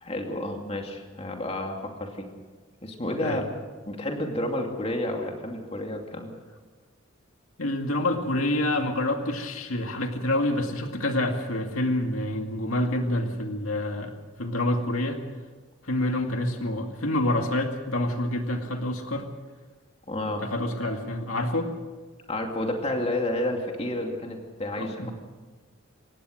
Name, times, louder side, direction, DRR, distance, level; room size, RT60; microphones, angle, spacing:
voice 1, 0.0-2.3 2.8-3.4 3.9-6.3 20.1-20.4 22.3-25.1, left 1 dB, 30° left, 2 dB, 2.6 m, -30 dB
voice 2, 7.6-15.2 15.8-19.3 20.4-21.7 24.8-25.1, left 1 dB, 85° left, 4 dB, 2.2 m, -27 dB
24.5 x 18.5 x 6.5 m, 1.4 s
head